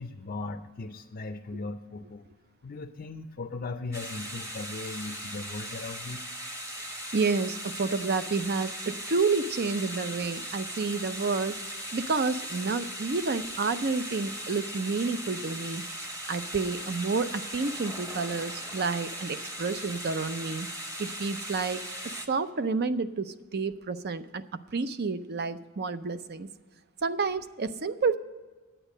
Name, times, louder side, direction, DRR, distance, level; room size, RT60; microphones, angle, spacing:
voice 1, 0.0-2.3 2.6-6.2, left 3 dB, 40° left, 6 dB, 0.5 m, -38 dB
sound 1, 3.9-22.3, equal, 15° right, 1.0 m, -38 dB
voice 2, 7.1-11.6 11.9-20.7 21.0-21.8 22.3-24.4 24.7-26.5 27.0-28.2, right 4 dB, 45° right, 12 dB, 0.5 m, -30 dB
10.0 x 8.9 x 6.4 m, 1.3 s
head